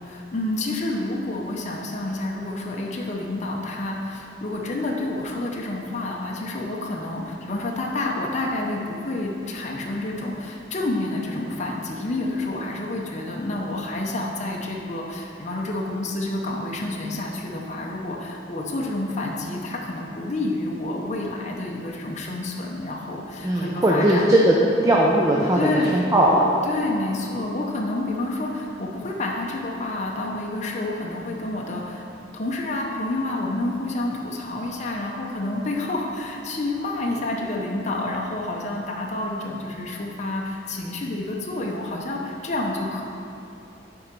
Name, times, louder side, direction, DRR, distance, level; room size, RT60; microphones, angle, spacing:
voice 1, 0.0-24.2 25.6-26.1 26.6-32.1 32.3-43.0, left 2 dB, 40° left, -1 dB, 0.7 m, -29 dB
voice 2, 23.4-24.5 24.8-26.6, right 1 dB, 15° right, -3 dB, 0.5 m, -19 dB
7.0 x 4.6 x 5.2 m, 2.7 s
head